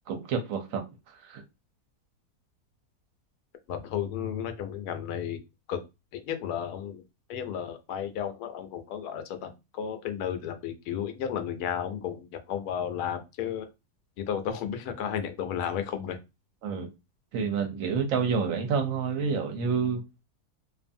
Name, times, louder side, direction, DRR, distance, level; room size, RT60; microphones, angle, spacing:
voice 1, 0.1-0.8 1.2-1.4 16.6-16.9 17.3-20.0, right 6 dB, 65° right, 1.0 m, -28 dB
voice 2, 3.7-5.4 5.7-5.8 6.1-7.0 7.3-13.7 14.2-16.2, left 8 dB, 80° left, 1.1 m, -33 dB
2.5 x 2.5 x 2.5 m
omnidirectional pair, 1.7 m